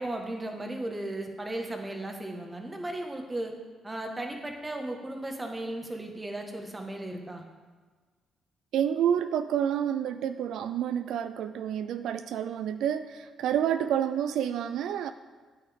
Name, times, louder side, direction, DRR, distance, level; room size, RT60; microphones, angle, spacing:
voice 1, 0.0-3.6 3.8-7.4, right 1 dB, 15° right, 3 dB, 1.4 m, -36 dB
voice 2, 8.7-15.1, right 9 dB, 80° right, 10 dB, 0.3 m, -29 dB
9.3 x 8.4 x 3.6 m, 1.4 s
cardioid pair, 90°, 0 cm